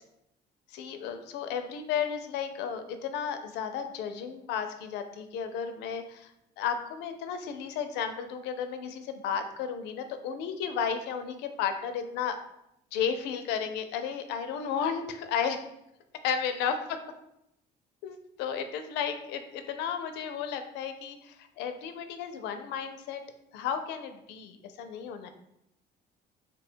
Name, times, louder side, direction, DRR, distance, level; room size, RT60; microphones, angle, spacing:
voice 1, 0.7-12.4 12.9-15.6 16.2-17.0 18.0-23.2 23.5-25.3, left 7 dB, 85° left, 8 dB, 0.4 m, -33 dB
3.1 x 2.2 x 4.2 m, 0.80 s
cardioid pair, 110°, 17 cm